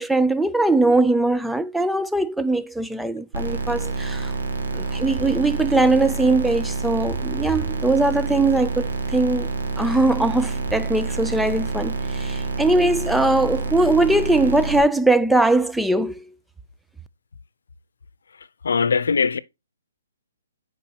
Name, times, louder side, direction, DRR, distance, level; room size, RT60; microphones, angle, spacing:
voice 1, 0.0-4.3 4.7-9.5 9.8-16.2, right 2 dB, ahead, 0.4 m, -20 dB
sound 1, 3.3-14.8, right 3 dB, 70° right, 1.9 m, -27 dB
voice 2, 18.6-19.4, left 5 dB, 80° left, 0.6 m, -20 dB
9.4 x 5.3 x 2.9 m
hypercardioid pair, 155°, 0 cm